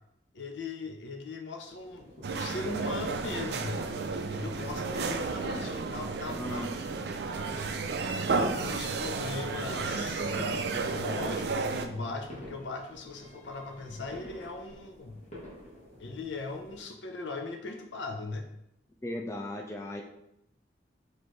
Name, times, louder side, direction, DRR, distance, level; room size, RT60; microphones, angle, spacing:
voice 1, 0.3-2.1 2.3-3.8 4.3-6.7 7.6-7.8 8.5-10.3 10.7-15.2 16.0-18.5, left 3 dB, 75° left, 4 dB, 0.6 m, -39 dB
sound 1, 1.7-16.8, left 1 dB, 40° left, 1.4 m, -48 dB
sound 2, 2.2-11.9, right 4 dB, 60° right, 0.3 m, -32 dB
voice 2, 6.2-7.0 19.0-20.0, left 1 dB, 15° left, 1 dB, 0.3 m, -37 dB
4.3 x 3.2 x 3.1 m, 0.79 s
head